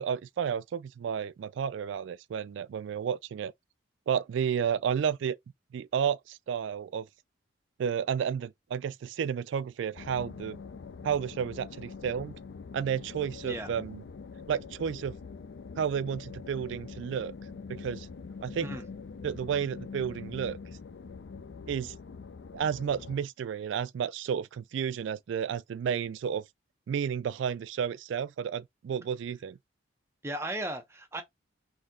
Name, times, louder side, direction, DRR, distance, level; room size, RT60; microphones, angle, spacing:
voice 1, 0.0-3.5 4.1-5.4 5.7-7.1 7.8-10.6 11.0-12.4 12.7-14.0 14.5-15.2 15.8-17.3 17.7-18.1 18.4-18.7 19.2-20.6 21.7-21.9 22.5-26.5 26.9-29.6, right 7 dB, 70° right, 0.3 m, -31 dB
sound 1, 9.9-23.2, left 5 dB, 65° left, 0.4 m, -44 dB
voice 2, 30.2-31.2, right 1 dB, 15° right, 0.8 m, -36 dB
4.1 x 2.8 x 3.7 m
head